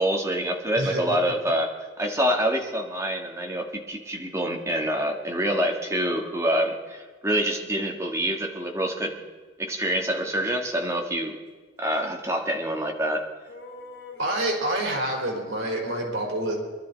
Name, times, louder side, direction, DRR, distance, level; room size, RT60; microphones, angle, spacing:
voice 1, 0.0-9.2 9.6-11.4 11.8-13.3, right 1 dB, 15° right, 1 dB, 1.8 m, -26 dB
voice 2, 0.8-1.2 14.2-16.5, right 1 dB, 80° right, 0 dB, 4.2 m, -27 dB
sound 1, 9.9-10.4 13.5-15.0, left 3 dB, 55° left, 3.8 m, -45 dB
23.0 x 12.5 x 4.1 m, 1.4 s
head